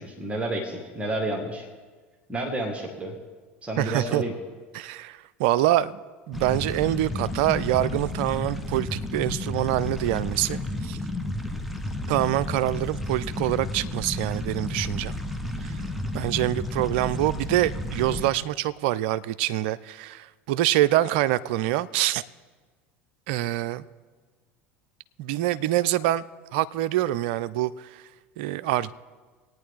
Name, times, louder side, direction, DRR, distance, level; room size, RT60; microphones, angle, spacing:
voice 1, 0.0-1.7 2.3-3.1 3.6-4.3, right 1 dB, 20° right, 1 dB, 1.9 m, -30 dB
voice 2, 3.8-4.2 4.7-6.0 6.3-11.0 12.1-15.2 15.6-15.7 16.1-22.2 23.3-23.8 25.2-26.2 26.5-27.7 28.4-28.9, right 14 dB, 60° right, 16 dB, 0.4 m, -25 dB
sound 1, 6.3-18.3, left 1 dB, ahead, 1.0 m, -32 dB
19.5 x 9.2 x 3.7 m, 1.4 s
figure-of-eight pair, 75°, 7 cm